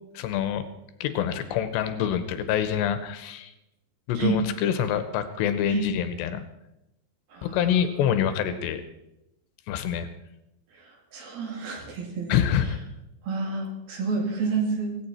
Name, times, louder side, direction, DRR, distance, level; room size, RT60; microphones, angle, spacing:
voice 1, 0.1-0.6 1.0-3.5 4.1-6.4 7.4-8.8 9.7-10.1 12.3-12.8, left 9 dB, 80° left, 10 dB, 3.1 m, -26 dB
voice 2, 11.1-12.4 13.3-14.9, right 4 dB, 60° right, 1 dB, 4.2 m, -28 dB
17.0 x 17.0 x 4.3 m, 0.89 s
omnidirectional pair, 5.1 m